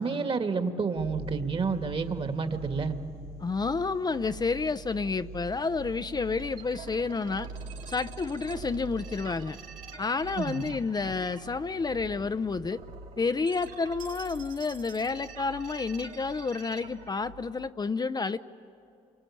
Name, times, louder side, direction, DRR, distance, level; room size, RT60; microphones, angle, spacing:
voice 1, 0.0-3.0 10.4-10.6, right 5 dB, 40° right, 7 dB, 2.1 m, -29 dB
sound 1, 1.0-17.7, right 3 dB, 85° right, 1.0 m, -45 dB
voice 2, 3.4-7.5 7.9-9.6 10.0-12.8 13.2-18.4, left 4 dB, 30° left, 10 dB, 0.7 m, -30 dB
sound 2, 6.4-17.1, right 6 dB, 65° right, 3.5 m, -48 dB
28.5 x 24.0 x 8.7 m, 2.8 s
supercardioid pair, 70°, 15 cm